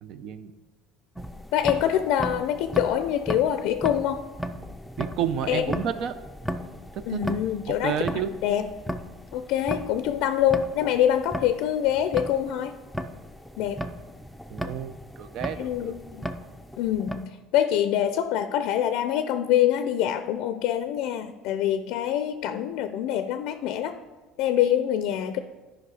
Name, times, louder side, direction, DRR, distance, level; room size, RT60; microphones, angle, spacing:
voice 1, 0.0-0.5 5.0-6.1 6.9-7.2 7.7-8.3 14.5-15.9, right 9 dB, 60° right, 11 dB, 0.7 m, -31 dB
sound 1, 1.1-17.2, equal, ahead, 0.5 m, -36 dB
voice 2, 1.5-4.2 5.5-5.7 7.1-8.0 8.4-8.7 9.3-12.7 13.6-13.8 15.6-16.2 16.8-23.9 24.4-25.4, left 10 dB, 70° left, 10 dB, 0.5 m, -25 dB
11.5 x 5.3 x 4.8 m, 1.2 s
supercardioid pair, 105°, 0 cm